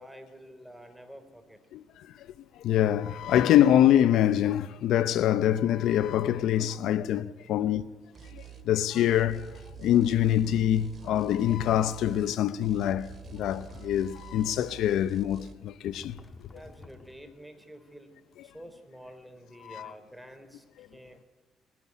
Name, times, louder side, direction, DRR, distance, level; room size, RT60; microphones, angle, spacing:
voice 1, 0.0-1.6 16.5-18.1 18.4-21.2, equal, ahead, 3.4 m, -49 dB
voice 2, 1.7-2.1 2.6-7.8 8.3-16.2 19.6-19.9 20.8-20.9, left 11 dB, 85° left, 0.6 m, -25 dB
sound 1, 8.1-8.7 9.1-12.4 12.6-15.5, right 9 dB, 45° right, 2.4 m, -47 dB
sound 2, 8.3-8.5 9.3-11.0 12.9-14.3 15.8-17.4, left 3 dB, 25° left, 1.6 m, -51 dB
21.0 x 15.5 x 9.6 m
cardioid pair, 90°, 0 cm